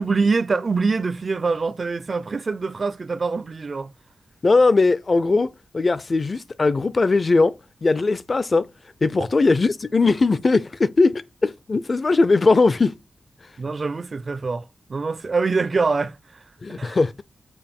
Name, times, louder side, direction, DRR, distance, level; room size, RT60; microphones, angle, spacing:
voice 1, 0.0-3.9 13.6-16.2 16.7-17.0, right 4 dB, 45° right, 0.4 m, -24 dB
voice 2, 4.4-7.5 7.8-8.7 9.0-12.9 16.6-17.2, left 3 dB, 45° left, 0.5 m, -19 dB
6.9 x 2.6 x 5.3 m
wide cardioid pair, 95°, 0 cm